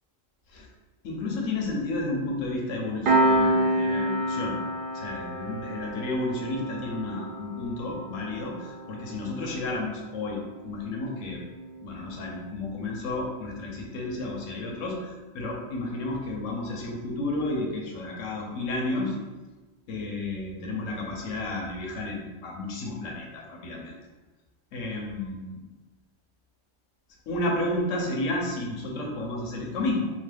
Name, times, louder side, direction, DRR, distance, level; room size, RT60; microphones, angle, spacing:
voice 1, 1.0-4.6 4.9-11.4 11.8-19.2 19.9-24.0 24.7-25.6 27.3-30.1, left 2 dB, 75° left, -1 dB, 1.0 m, -32 dB
Piano, 3.0-14.1, right 1 dB, 65° right, 0.5 m, -30 dB
2.9 x 2.0 x 3.3 m, 1.2 s
omnidirectional pair, 1.4 m